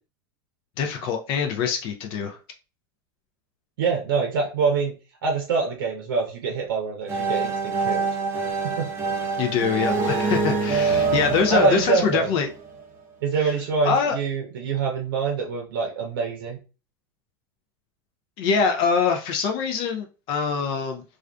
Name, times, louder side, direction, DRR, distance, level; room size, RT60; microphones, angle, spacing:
voice 1, 0.8-2.4 9.4-12.5 13.4-13.5 13.8-14.2 18.4-21.0, left 6 dB, 50° left, 4 dB, 0.4 m, -24 dB
voice 2, 3.8-4.9 5.2-8.1 8.6-8.9 11.5-12.3 13.2-16.6, right 5 dB, 85° right, 1 dB, 0.6 m, -25 dB
sound 1, 7.1-12.8, right 4 dB, 20° right, 0.7 m, -25 dB
2.4 x 2.3 x 2.2 m, 0.33 s
supercardioid pair, 115°, 11 cm